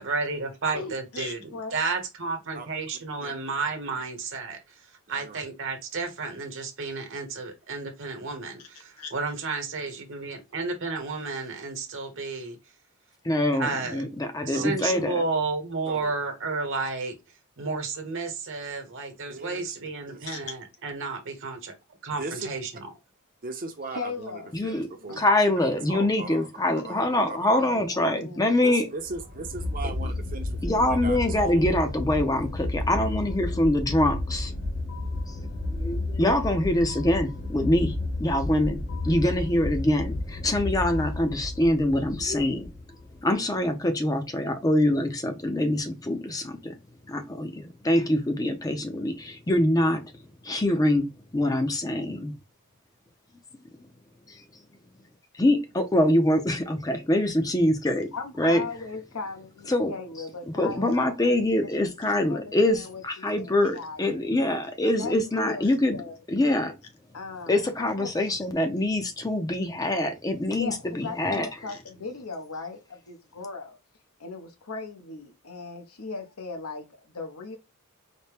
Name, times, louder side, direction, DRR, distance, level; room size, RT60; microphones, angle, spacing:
voice 1, 0.0-1.4 1.7-4.6 5.1-12.6 13.5-14.0 14.4-17.1 17.6-21.7 22.0-22.7, right 4 dB, 60° right, 1.1 m, -32 dB
voice 2, 0.7-1.8 8.6-8.7 9.0-9.1 20.3-20.6 23.9-24.5 25.1-25.2 26.6-28.8 58.1-61.4 62.0-64.3 64.8-66.1 67.1-68.4 70.6-73.8 74.2-77.6, left 4 dB, 80° left, 0.9 m, -38 dB
voice 3, 5.1-5.4 14.5-14.7 15.9-16.1 19.3-19.7 20.1-20.4 22.1-22.5 23.4-25.2 25.7-26.5 26.8-27.7 28.6-31.7, right 3 dB, 40° right, 0.7 m, -38 dB
voice 4, 13.2-15.2 24.5-24.9 25.2-28.9 30.6-34.5 35.3-35.4 35.7-42.7 43.2-46.8 47.1-50.1 50.4-51.0 51.3-52.3 54.3-54.4 55.3-58.1 58.4-58.6 59.7-59.9 60.6-66.0 66.3-66.8 67.5-71.5, left 1 dB, 15° left, 0.5 m, -24 dB
sound 1, 29.0-43.2, left 2 dB, 45° left, 1.0 m, -32 dB
4.2 x 2.1 x 3.3 m
head